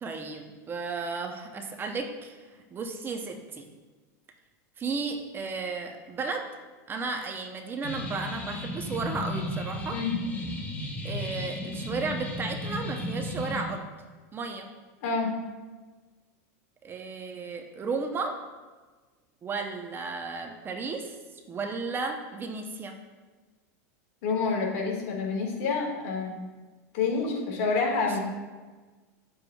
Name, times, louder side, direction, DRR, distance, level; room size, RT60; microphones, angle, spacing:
voice 1, 0.0-2.4 2.7-3.6 4.8-6.5 6.9-10.0 11.0-13.8 14.3-14.7 16.8-18.4 19.4-21.1 21.5-23.0, right 4 dB, 25° right, 4 dB, 0.7 m, -34 dB
sound 1, 7.8-13.6, left 1 dB, 20° left, 1.1 m, -34 dB
voice 2, 9.9-10.2 15.0-15.4 24.2-26.4 26.9-28.2, left 4 dB, 65° left, 0 dB, 1.8 m, -28 dB
8.6 x 7.0 x 2.3 m, 1.3 s
supercardioid pair, 125°, 9 cm